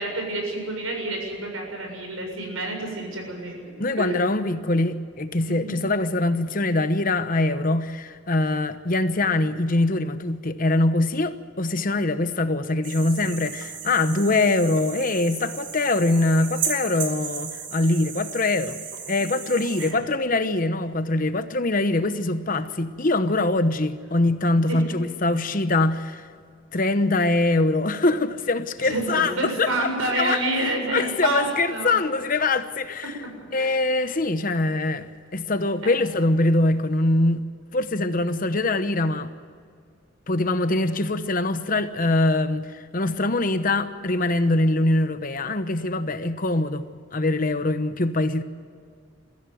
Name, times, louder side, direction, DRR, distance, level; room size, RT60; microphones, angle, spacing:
voice 1, 0.0-3.6 4.0-4.2 5.4-5.8 19.8-20.0 24.7-24.8 28.8-31.9 33.2-33.8 35.8-35.9, right 2 dB, 85° right, 7.2 m, -28 dB
voice 2, 3.8-18.8 19.1-26.3 26.7-30.4 30.9-33.2 33.5-37.4 37.7-39.3 40.3-48.4, left 2 dB, 40° left, 1.0 m, -23 dB
sound 1, 12.8-19.9, right 7 dB, 60° right, 3.0 m, -35 dB
23.0 x 15.0 x 9.3 m
head